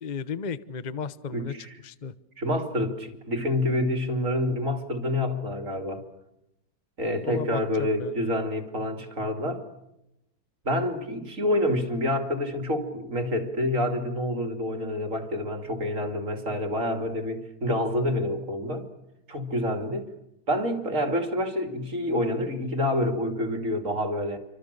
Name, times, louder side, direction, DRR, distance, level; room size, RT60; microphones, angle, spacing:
voice 1, 0.0-1.5 1.8-2.1 7.2-8.3, left 6 dB, 45° left, 0.6 m, -34 dB
voice 2, 1.3-1.7 2.4-6.0 7.0-9.6 10.6-18.9 19.3-20.1 20.5-24.4, left 1 dB, 35° right, 3.0 m, -27 dB
28.5 x 25.5 x 6.8 m
omnidirectional pair, 2.3 m